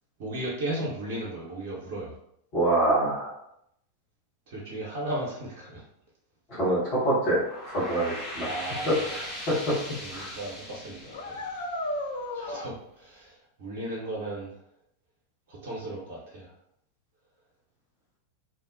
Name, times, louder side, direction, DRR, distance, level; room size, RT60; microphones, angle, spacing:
voice 1, 0.2-2.2 4.5-5.8 8.4-9.5 10.0-11.4 12.3-14.5 15.5-16.5, right 1 dB, 50° right, -5 dB, 0.7 m, -36 dB
voice 2, 2.5-3.3 6.5-7.4 7.7-8.5 8.9-9.2 9.5-9.7 10.1-10.3, right 1 dB, 40° left, -8 dB, 1.0 m, -25 dB
sound 1, 7.2-12.5, left 1 dB, 20° left, 0.8 m, -39 dB
sound 2, 9.1-9.2 9.7-10.0 10.2-10.3 11.1-12.7, left 1 dB, 60° left, 0.3 m, -34 dB
2.5 x 2.0 x 2.5 m, 0.74 s
figure-of-eight pair, 90°, 0 cm